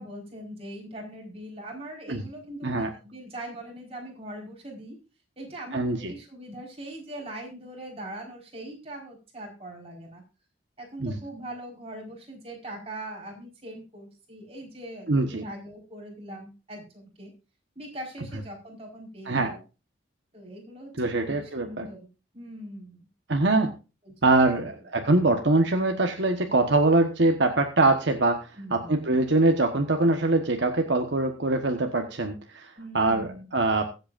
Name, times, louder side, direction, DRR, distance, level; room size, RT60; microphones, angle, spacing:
voice 1, 0.0-5.0 5.4-10.2 10.8-17.3 17.7-19.6 20.3-20.9 21.2-22.1 22.3-23.0 24.0-24.1 24.6-24.7 28.6-29.2 32.8-33.5, right 1 dB, 30° right, 0 dB, 4.6 m, -41 dB
voice 2, 5.7-6.1 11.0-11.2 15.1-15.4 19.3-19.5 21.0-21.9 23.3-23.7 24.2-33.9, right 2 dB, 60° right, 4 dB, 1.2 m, -23 dB
22.5 x 8.0 x 2.5 m, 0.31 s
head